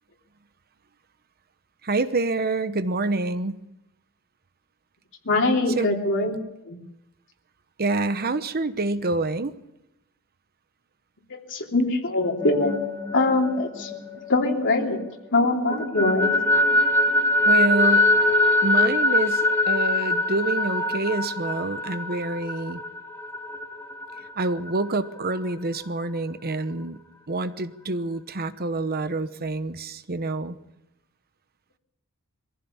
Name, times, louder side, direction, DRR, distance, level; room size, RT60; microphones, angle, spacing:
voice 1, 1.8-3.6 5.8-6.0 7.8-9.5 17.4-18.1 18.6-22.8 24.4-27.0 27.3-30.6, right 2 dB, 45° right, 12 dB, 1.0 m, -27 dB
voice 2, 5.2-6.3 6.7-6.8 11.3-12.8 13.1-13.9 14.3-15.0 15.3-16.3, left 2 dB, 55° left, 1 dB, 3.2 m, -22 dB
sound 1, 12.2-15.1 15.4-24.9, left 2 dB, 10° left, 2.5 m, -23 dB
23.5 x 15.5 x 7.3 m, 0.89 s
head